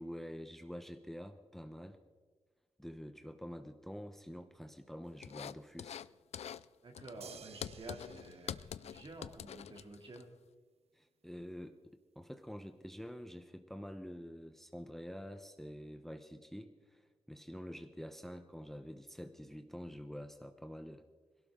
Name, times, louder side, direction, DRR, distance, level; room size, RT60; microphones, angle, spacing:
voice 1, 0.0-2.0 2.8-6.0 10.9-21.0, equal, 5° left, 7 dB, 0.9 m, -47 dB
sound 1, 5.2-6.1 6.3-6.7 6.9-10.2, left 9 dB, 75° left, 0.4 m, -45 dB
voice 2, 6.8-10.3, right 2 dB, 50° right, 2 dB, 2.8 m, -50 dB
sound 2, 7.2-9.7 11.4-11.5, right 7 dB, 70° right, 0.7 m, -56 dB
22.0 x 17.0 x 3.7 m, 1.4 s
cardioid pair, 95°, 11 cm